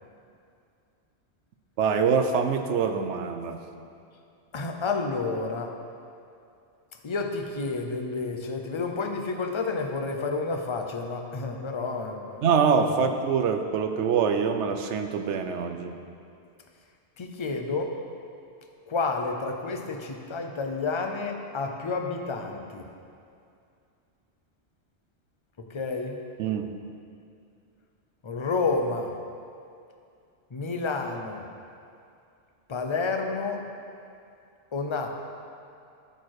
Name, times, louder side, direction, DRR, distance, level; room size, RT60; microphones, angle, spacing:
voice 1, 1.8-3.6 12.4-16.0 26.4-26.7, right 6 dB, 90° right, 7 dB, 0.9 m, -24 dB
voice 2, 4.5-5.7 7.0-12.4 12.9-13.0 17.2-18.0 18.9-22.9 25.7-26.2 28.2-29.1 30.5-31.5 32.7-33.6 34.7-35.1, left 3 dB, 35° left, 3 dB, 0.6 m, -30 dB
12.5 x 4.5 x 4.7 m, 2.5 s
omnidirectional pair, 1.1 m